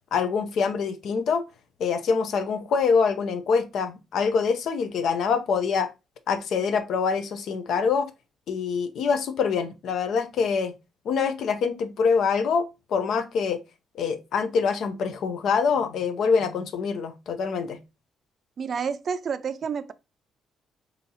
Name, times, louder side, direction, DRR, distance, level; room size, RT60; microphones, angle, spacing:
voice 1, 0.1-1.4 1.8-5.9 6.3-8.1 8.5-10.7 11.0-13.6 13.9-17.8, left 5 dB, 70° left, 0.5 m, -25 dB
voice 2, 18.6-19.9, right 6 dB, 50° right, 0.4 m, -29 dB
3.9 x 2.7 x 2.7 m
cardioid pair, 90°, 0 cm